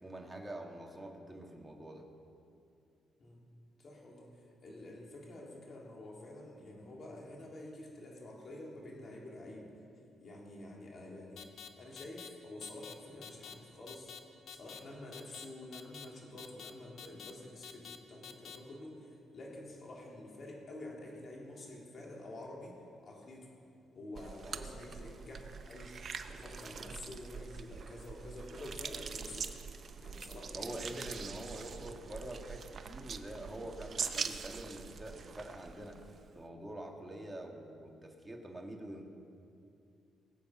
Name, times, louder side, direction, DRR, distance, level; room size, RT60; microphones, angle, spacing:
voice 1, 0.0-2.0 24.4-24.7 30.5-36.0 36.3-39.0, right 1 dB, 10° right, 1 dB, 2.1 m, -45 dB
voice 2, 3.8-4.3 4.6-9.7 10.2-14.2 14.5-23.5 23.9-29.4 30.0-30.8 31.2-31.3, left 1 dB, 45° left, -2 dB, 3.7 m, -48 dB
sound 1, 11.4-11.7 12.0-12.3 12.6-12.9 13.2-13.5 13.9-14.2 14.5-14.8 15.1-15.4 15.7-16.0 16.4-16.7 17.0-17.3 17.6-18.0 18.2-18.6, left 8 dB, 70° left, 1.0 m, -48 dB
sound 2, 24.2-36.4, right 6 dB, 45° right, 0.8 m, -44 dB
21.0 x 8.3 x 6.1 m, 2.5 s
cardioid pair, 90°, 0 cm